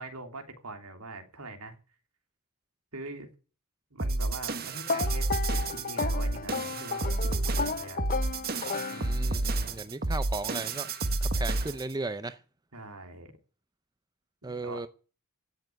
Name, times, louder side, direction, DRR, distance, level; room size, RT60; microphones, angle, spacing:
voice 1, 0.0-1.7 2.9-3.3 3.9-8.0 12.7-13.3 14.4-14.8, right 2 dB, 90° right, 3.2 m, -43 dB
sound 1, 4.0-11.9, right 2 dB, 45° right, 1.5 m, -30 dB
sound 2, 4.9-9.5, left 4 dB, 40° left, 0.8 m, -34 dB
voice 2, 8.9-12.4 14.4-14.9, right 2 dB, 20° right, 0.7 m, -36 dB
16.0 x 6.9 x 9.8 m
head